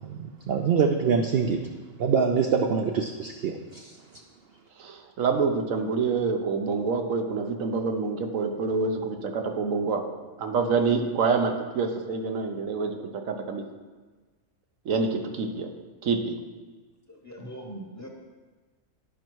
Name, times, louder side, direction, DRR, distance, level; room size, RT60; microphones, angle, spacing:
voice 1, 0.0-1.7 2.0-4.0, right 6 dB, 60° right, 4 dB, 0.7 m, -25 dB
voice 2, 4.8-10.0 10.4-13.6 14.8-15.7 16.0-16.4, right 4 dB, 80° right, 5 dB, 1.2 m, -27 dB
voice 3, 17.1-18.1, right 1 dB, 15° left, 0 dB, 0.9 m, -41 dB
10.5 x 5.3 x 4.5 m, 1.3 s
omnidirectional pair, 1.4 m